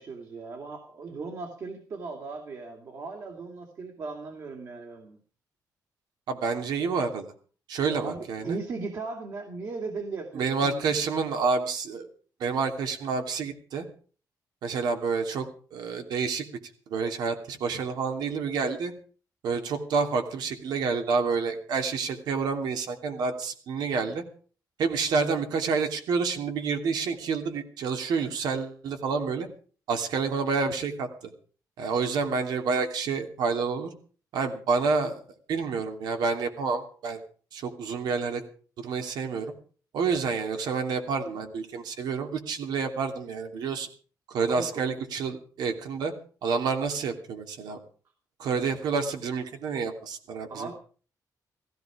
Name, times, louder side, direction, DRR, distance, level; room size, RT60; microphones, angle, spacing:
voice 1, 0.0-5.2 7.9-11.0 44.5-44.8 50.5-50.7, right 4 dB, 50° right, 3 dB, 2.6 m, -37 dB
voice 2, 6.3-7.3 7.7-8.6 10.3-12.1 12.4-13.9 14.6-15.5 15.7-16.4 16.9-18.9 19.4-24.2 24.8-29.5 29.9-31.1 31.8-33.9 34.3-35.2 35.5-37.2 37.5-38.4 38.8-39.5 39.9-43.9 44.3-46.1 46.4-47.8 48.4-50.7, right 5 dB, 90° right, 5 dB, 3.0 m, -28 dB
17.0 x 15.5 x 5.0 m, 0.42 s
cardioid pair, 150°, 7 cm